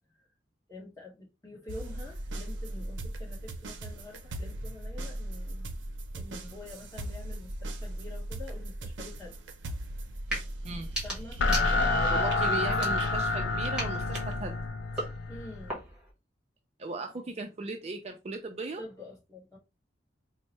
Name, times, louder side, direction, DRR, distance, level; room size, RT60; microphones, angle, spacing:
voice 1, 0.7-5.7 6.1-9.4 11.0-13.2 15.3-15.9 18.8-19.6, left 2 dB, 15° left, 1.3 m, -46 dB
sound 1, 1.7-13.3 13.6-14.3, right 1 dB, 80° right, 0.6 m, -39 dB
sound 2, 10.3-10.5 10.8-12.1 12.7-13.4 13.8-16.1, right 1 dB, 5° right, 1.3 m, -38 dB
sound 3, 10.6-15.7, left 2 dB, 70° left, 0.4 m, -29 dB
voice 2, 10.6-11.0 12.1-14.6 16.8-18.8, right 2 dB, 35° right, 0.4 m, -37 dB
4.4 x 2.1 x 3.0 m
head